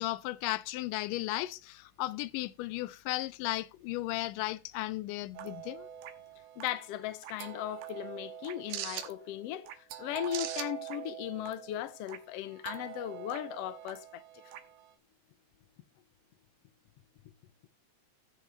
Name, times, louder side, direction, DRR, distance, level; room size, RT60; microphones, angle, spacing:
voice 1, 0.0-5.9, left 17 dB, 90° left, 2.2 m, -35 dB
sound 1, 5.3-14.9, right 11 dB, 90° right, 2.6 m, -43 dB
voice 2, 6.6-9.7 10.0-14.2, left 13 dB, 70° left, 1.5 m, -37 dB
15.0 x 6.5 x 3.4 m
omnidirectional pair, 3.7 m